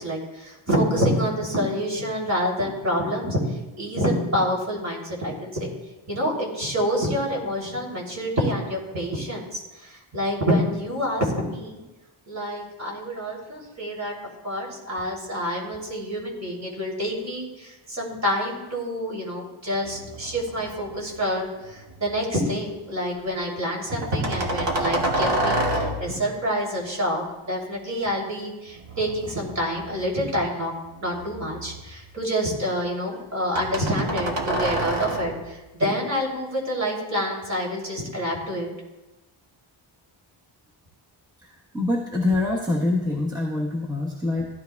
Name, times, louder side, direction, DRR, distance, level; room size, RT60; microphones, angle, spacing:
voice 1, 0.0-3.4 3.8-5.7 6.1-11.8 12.3-14.1 14.4-30.7 31.0-38.7, equal, 35° right, -2 dB, 3.1 m, -27 dB
sound 1, 19.8-21.2 21.6-22.3 23.9-26.3 28.8-30.3 30.8-32.1 33.5-35.5, right 1 dB, 60° right, 1.8 m, -28 dB
voice 2, 41.7-44.5, left 2 dB, 10° right, -5 dB, 1.2 m, -25 dB
16.0 x 11.5 x 2.3 m, 1.1 s
wide cardioid pair, 175°, 49 cm